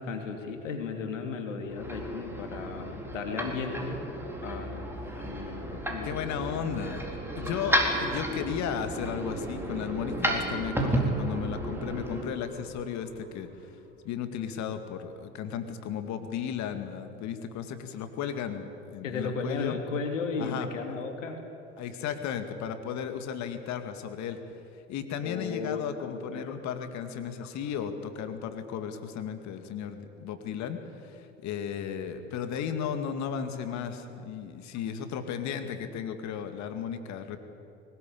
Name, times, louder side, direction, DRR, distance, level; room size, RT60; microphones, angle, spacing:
voice 1, 0.0-4.0 4.4-6.2 6.5-6.6 19.0-21.4 25.2-26.6 27.4-27.5, left 4 dB, 75° left, 4 dB, 2.9 m, -35 dB
sound 1, 1.6-12.2, equal, 5° right, 4.0 m, -33 dB
sound 2, 4.1-14.1, right 2 dB, 35° right, 3.9 m, -43 dB
voice 2, 6.0-7.1 7.4-13.5 14.0-19.8 20.4-20.7 21.8-24.4 24.9-37.4, left 8 dB, 45° left, 8 dB, 2.3 m, -35 dB
21.5 x 19.5 x 8.5 m, 3.0 s
figure-of-eight pair, 75°, 38 cm